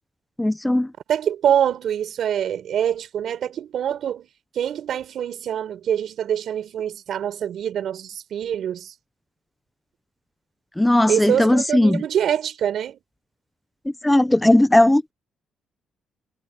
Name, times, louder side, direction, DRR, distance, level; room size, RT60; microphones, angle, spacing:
voice 1, 0.4-0.9 10.8-12.0 14.0-15.1, left 1 dB, 10° left, 0.7 m, -17 dB
voice 2, 1.1-4.3 4.5-8.9 11.1-13.0, right 9 dB, 65° right, 4.3 m, -25 dB
cardioid pair, 90°, 0 cm